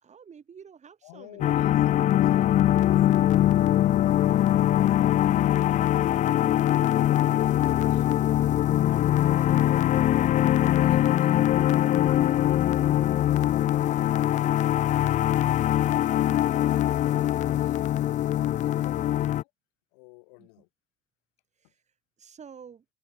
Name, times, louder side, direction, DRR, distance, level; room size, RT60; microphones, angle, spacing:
voice 1, 0.0-2.3 4.2-4.4 5.3-5.6 6.8-7.0 8.7-9.8 10.2-10.4 18.7-19.1 20.4-20.5 21.6-21.8 22.2-22.8, right 7 dB, 35° right, 3.1 m, -51 dB
voice 2, 1.0-8.4 10.3-15.3 15.9-16.4 16.8-17.9 18.4-19.5 19.9-20.7 21.6-21.7, left 29 dB, 70° left, 5.9 m, -50 dB
sound 1, 1.4-19.4, left 12 dB, 35° left, 0.4 m, -22 dB
open air
hypercardioid pair, 75°, 21 cm